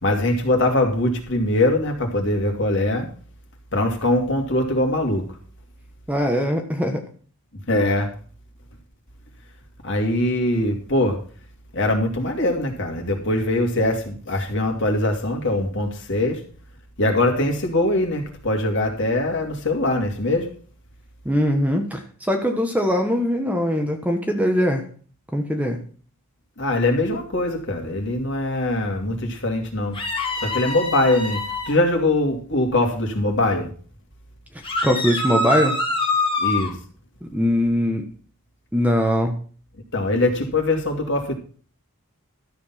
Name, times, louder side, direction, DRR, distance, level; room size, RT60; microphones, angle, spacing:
voice 1, 0.0-3.1 3.7-5.3 7.7-8.1 9.8-11.2 11.7-16.4 17.0-20.5 26.6-30.0 30.4-31.4 31.7-33.7 36.4-36.8 39.9-41.3, left 1 dB, 55° left, 3 dB, 2.6 m, -22 dB
voice 2, 6.1-7.0 21.2-24.8 25.3-25.8 34.8-35.8 37.2-38.0 38.7-39.4, equal, 5° right, 4 dB, 1.2 m, -21 dB
sound 1, 29.9-31.7 34.6-36.7, left 2 dB, 25° left, 2.5 m, -25 dB
13.0 x 7.1 x 5.8 m, 0.42 s
head